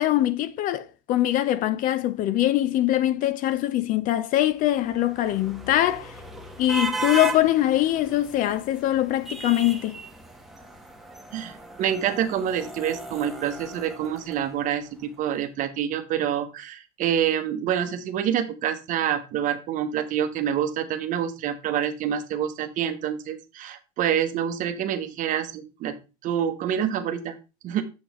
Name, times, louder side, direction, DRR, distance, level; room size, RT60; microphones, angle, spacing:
voice 1, 0.0-6.2 6.6-10.0, left 14 dB, 45° left, 0.6 m, -23 dB
sound 1, 4.6-14.9, right 2 dB, ahead, 1.1 m, -37 dB
voice 2, 11.3-25.9 26.2-27.3 27.6-27.8, right 9 dB, 45° right, 1.0 m, -27 dB
7.2 x 6.1 x 3.1 m
supercardioid pair, 135°, 19 cm